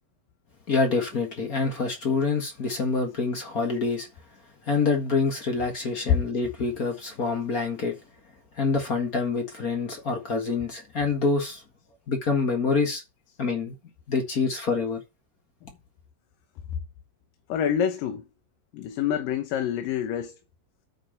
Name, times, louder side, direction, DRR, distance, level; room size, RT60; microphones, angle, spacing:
voice 1, 0.7-4.1 4.7-7.9 8.6-11.6 12.1-13.0 13.4-13.7 14.1-15.0, left 4 dB, 35° left, 1.5 m, -26 dB
voice 2, 17.5-18.2 18.7-20.3, left 9 dB, 90° left, 2.8 m, -27 dB
9.0 x 7.2 x 4.5 m
omnidirectional pair, 3.8 m